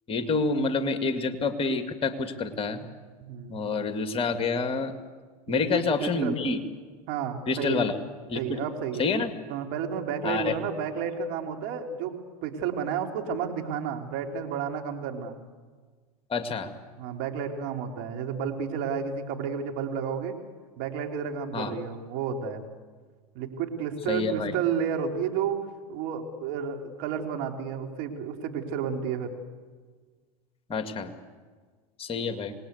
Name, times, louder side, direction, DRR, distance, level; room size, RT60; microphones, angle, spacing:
voice 1, 0.1-2.9 3.5-4.9 5.5-6.6 7.5-8.0 8.3-8.6 9.0-9.3 10.2-10.5 16.3-16.7 21.5-21.8 24.1-24.5 30.7-31.1 32.0-32.5, left 4 dB, 30° left, 8 dB, 2.1 m, -28 dB
voice 2, 3.2-3.6 5.5-6.3 7.1-7.8 8.3-9.1 9.5-12.1 12.4-15.4 17.0-20.4 20.8-22.6 23.3-25.6 25.9-29.3, right 7 dB, 55° right, 3 dB, 3.4 m, -31 dB
27.0 x 19.5 x 8.2 m, 1.5 s
hypercardioid pair, 100°, 20 cm